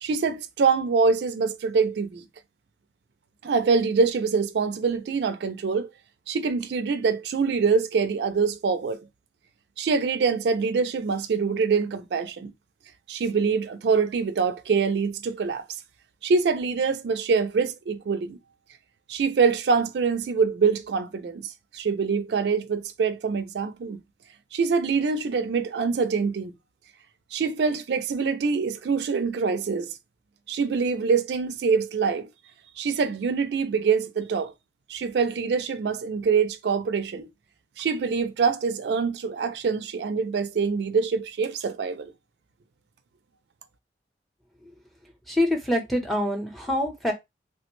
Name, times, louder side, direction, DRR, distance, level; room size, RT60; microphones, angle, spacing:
voice 1, 0.0-2.2 3.4-5.9 6.3-9.0 9.8-12.5 13.1-15.6 16.2-18.4 19.1-24.0 24.5-26.5 27.3-29.9 30.5-32.3 32.8-34.5 34.9-37.3 37.8-42.1, right 5 dB, 75° right, 0.4 m, -25 dB
voice 2, 45.3-47.1, left 1 dB, ahead, 0.6 m, -25 dB
3.2 x 2.1 x 2.9 m
head